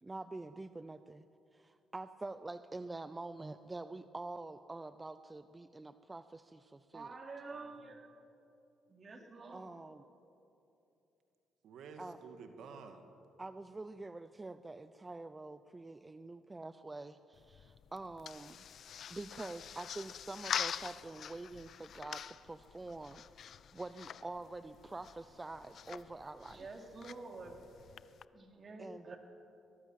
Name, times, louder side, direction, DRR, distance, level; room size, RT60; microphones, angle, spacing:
voice 1, 0.0-1.2 1.5-6.4 6.9-7.2 9.5-10.0 12.0-12.2 13.4-18.6 19.1-26.6 28.8-29.2, right 2 dB, 20° right, 12 dB, 0.6 m, -46 dB
voice 2, 6.9-8.1 8.9-9.7 26.5-27.5 28.3-29.2, right 3 dB, 40° right, 3 dB, 3.5 m, -48 dB
voice 3, 7.5-7.9 11.6-13.0 28.6-28.9, right 5 dB, 75° right, 5 dB, 2.2 m, -52 dB
sound 1, 17.3-28.2, left 8 dB, 60° left, 0.6 m, -45 dB
22.5 x 20.5 x 7.6 m, 2.8 s
cardioid pair, 90°, 0 cm